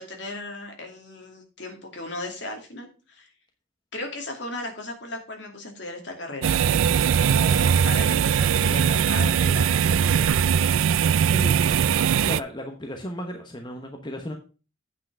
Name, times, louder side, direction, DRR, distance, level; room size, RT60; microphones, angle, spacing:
voice 1, 0.0-3.3 3.9-6.6 7.1-10.5, left 2 dB, 60° left, 3 dB, 2.6 m, -36 dB
sound 1, 6.4-12.4, right 7 dB, 85° right, 0.4 m, -20 dB
voice 2, 11.2-11.6 12.1-14.3, equal, 20° left, 3 dB, 1.0 m, -34 dB
8.5 x 5.7 x 6.1 m, 0.34 s
head